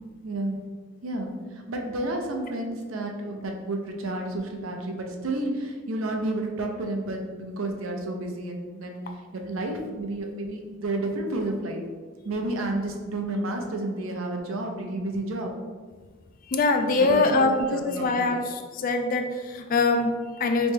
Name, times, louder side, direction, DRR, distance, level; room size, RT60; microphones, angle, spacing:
voice 1, 0.2-0.6 1.0-9.0 9.3-11.8 12.2-15.5 17.0-18.4, right 2 dB, 75° right, 2 dB, 0.6 m, -31 dB
voice 2, 16.5-20.7, left 3 dB, 40° left, 6 dB, 0.3 m, -23 dB
3.2 x 3.0 x 3.4 m, 1.4 s
head